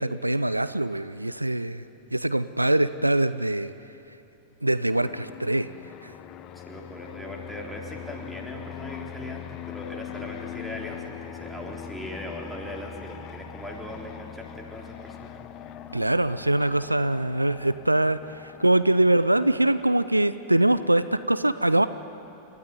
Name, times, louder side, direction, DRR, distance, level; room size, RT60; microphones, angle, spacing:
voice 1, 0.0-1.8 2.1-3.7 4.6-5.7 6.0-6.1 15.9-21.9, right 1 dB, 85° right, 14 dB, 0.5 m, -23 dB
Fixed-wing aircraft airplane, 4.9-20.1, left 10 dB, 35° left, 1.0 m, -41 dB
voice 2, 6.5-15.4, equal, ahead, 0 dB, 3.7 m, -39 dB
29.5 x 13.5 x 9.6 m, 2.8 s
figure-of-eight pair, 90°, 0 cm